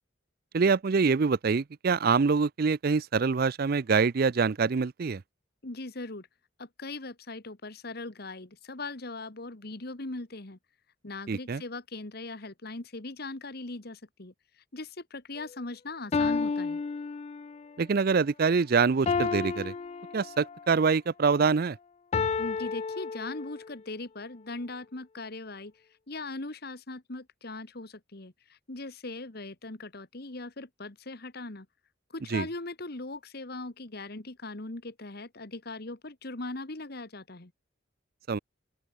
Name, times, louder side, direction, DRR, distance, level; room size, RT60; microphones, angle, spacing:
voice 1, 0.5-5.2 11.3-11.6 17.8-19.7 20.1-21.8 32.3-32.5 38.3-38.4, right 5 dB, 50° right, 0.5 m, -25 dB
voice 2, 5.6-6.3 6.6-10.6 11.0-16.8 22.4-25.7 26.1-31.7 32.1-37.5, left 2 dB, 50° left, 1.6 m, -40 dB
sound 1, 15.4-15.5 16.1-17.7 19.1-20.7 22.1-23.7, left 5 dB, 30° left, 0.3 m, -31 dB
open air
head